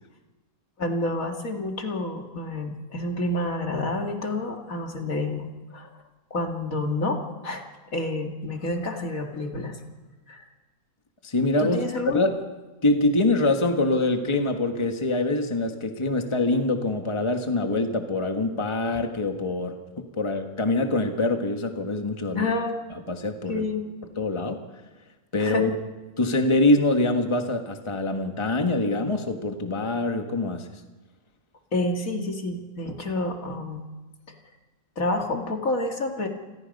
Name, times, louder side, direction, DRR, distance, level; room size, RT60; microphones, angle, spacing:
voice 1, 0.8-5.9 6.3-7.6 7.9-9.8 10.3-10.4 11.6-12.3 22.3-22.8 23.5-23.9 25.4-25.7 31.7-33.8 35.0-36.3, left 2 dB, 65° left, 3 dB, 2.6 m, -29 dB
voice 2, 11.2-12.4 12.8-22.5 23.1-23.7 24.2-24.6 25.3-25.7 26.2-30.7, left 2 dB, 20° left, 5 dB, 1.5 m, -24 dB
28.5 x 21.5 x 5.4 m, 1.2 s
omnidirectional pair, 1.5 m